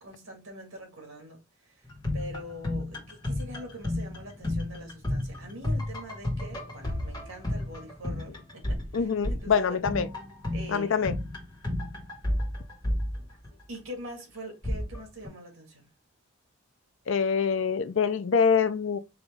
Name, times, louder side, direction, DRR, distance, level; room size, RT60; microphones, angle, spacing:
voice 1, 0.0-1.4 1.6-1.9 2.1-9.1 9.4-9.8 10.5-11.1 13.3-15.9, equal, 80° right, 2.0 m, -44 dB
sound 1, 1.8-13.8 14.6-15.3, left 1 dB, 20° left, 1.8 m, -32 dB
voice 2, 8.9-10.1 10.7-11.1 17.1-19.0, left 6 dB, 65° left, 0.5 m, -25 dB
4.9 x 3.0 x 3.5 m
head